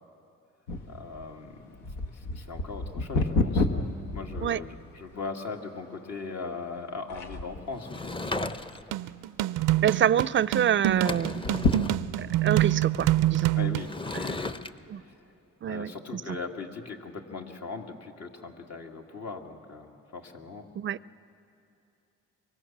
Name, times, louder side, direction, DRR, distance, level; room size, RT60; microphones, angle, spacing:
sound 1, 0.7-5.1 5.7-5.8 6.5-6.8 7.1-7.8 8.3-9.0 9.3-9.4 9.7-9.8 11.3-12.4 13.0-13.1, left 2 dB, 90° left, 1.6 m, -30 dB
voice 1, 0.9-3.7 4.1-8.2 13.6-14.6 15.0-15.3 15.7-20.6, left 4 dB, 60° left, 2 dB, 2.4 m, -39 dB
Sliding door / Wood, 7.8-9.0 10.5-10.6 10.9-12.0 13.8-14.7, left 2 dB, 15° left, 0.7 m, -35 dB
sound 2, 8.9-13.9, right 15 dB, 90° right, 0.5 m, -26 dB
voice 2, 9.8-11.4 12.2-13.5 14.9-15.0 15.6-16.2 20.8-21.0, right 9 dB, 40° right, 19 dB, 0.5 m, -26 dB
25.0 x 23.5 x 7.4 m, 2.7 s
cardioid pair, 90°, 30 cm